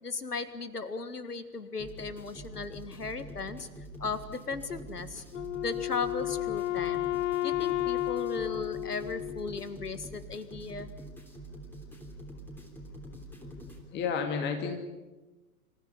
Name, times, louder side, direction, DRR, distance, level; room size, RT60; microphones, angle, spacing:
voice 1, 0.0-3.7 4.0-5.2 5.6-7.1 7.4-10.9, left 4 dB, 75° left, 12 dB, 2.0 m, -36 dB
sound 1, 1.8-13.8, right 1 dB, 5° left, 3.3 m, -45 dB
Wind instrument woodwind instrument, 5.3-9.8, left 15 dB, 50° left, 0.8 m, -32 dB
voice 2, 13.9-14.8, left 6 dB, 25° left, 5 dB, 2.5 m, -31 dB
27.0 x 15.0 x 9.9 m, 1.1 s
figure-of-eight pair, 110°, 46 cm